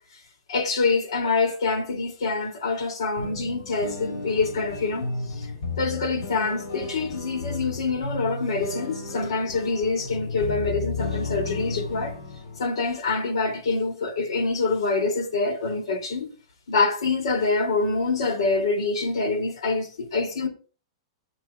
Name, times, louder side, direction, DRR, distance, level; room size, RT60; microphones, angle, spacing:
voice 1, 0.5-5.5 5.8-12.2 12.6-16.3 16.7-20.5, left 3 dB, 85° left, 2.7 m, -25 dB
sound 1, 3.2-12.6, left 3 dB, 65° left, 3.4 m, -33 dB
17.0 x 6.6 x 2.3 m
supercardioid pair, 160°, 3 cm